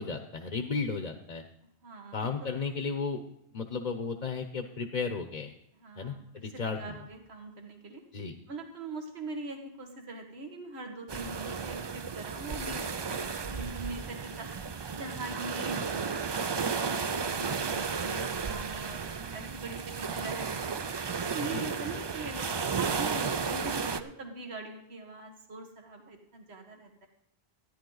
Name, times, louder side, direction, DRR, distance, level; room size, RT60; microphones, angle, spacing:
voice 1, 0.0-1.4 2.1-3.2 3.5-5.5 6.0-7.0 8.1-8.4 21.5-21.7, left 4 dB, 45° left, 6 dB, 0.9 m, -34 dB
voice 2, 1.8-2.6 5.8-8.0 8.5-14.5 14.9-20.8 21.3-27.1, right 3 dB, 75° right, 3 dB, 1.7 m, -42 dB
sound 1, 11.1-24.0, right 5 dB, 45° right, 0.3 m, -33 dB
13.5 x 10.5 x 3.9 m, 0.78 s
omnidirectional pair, 1.1 m